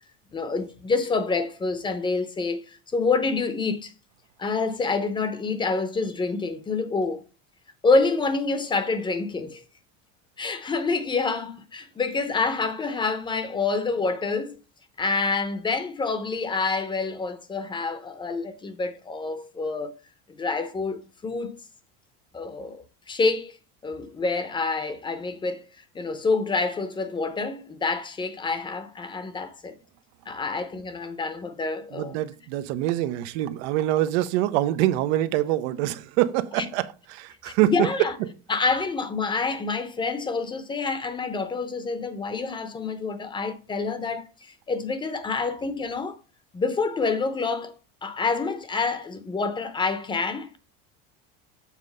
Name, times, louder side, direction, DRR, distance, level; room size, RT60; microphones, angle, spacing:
voice 1, 0.3-3.9 4.4-7.2 7.8-9.6 10.4-14.6 15.0-19.9 20.4-21.6 22.3-23.6 23.8-25.6 25.9-29.7 30.3-32.2 36.6-36.7 37.6-38.2 38.5-46.2 46.5-47.7 48.0-50.6, left 4 dB, 15° left, 0.7 m, -27 dB
voice 2, 31.9-36.9 37.1-37.9, right 14 dB, 80° right, 0.7 m, -25 dB
7.3 x 3.6 x 5.4 m
cardioid pair, 150°, 32 cm